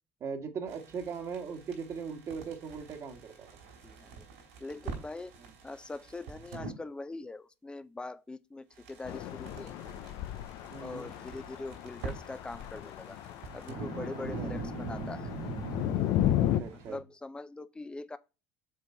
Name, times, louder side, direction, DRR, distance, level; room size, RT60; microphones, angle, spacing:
voice 1, 0.2-3.5 5.4-5.5 10.7-11.1 14.1-14.5 16.4-17.0, right 6 dB, 45° right, 1.6 m, -39 dB
sound 1, 0.7-6.7 8.8-17.0, right 3 dB, 80° right, 4.0 m, -43 dB
voice 2, 3.8-4.3 4.6-5.3 5.6-9.7 10.8-13.2 13.5-15.3 16.9-18.2, left 2 dB, 15° left, 0.7 m, -42 dB
sound 2, 9.0-16.6, left 12 dB, 65° left, 0.6 m, -34 dB
7.4 x 3.8 x 4.3 m
hypercardioid pair, 85°, 7 cm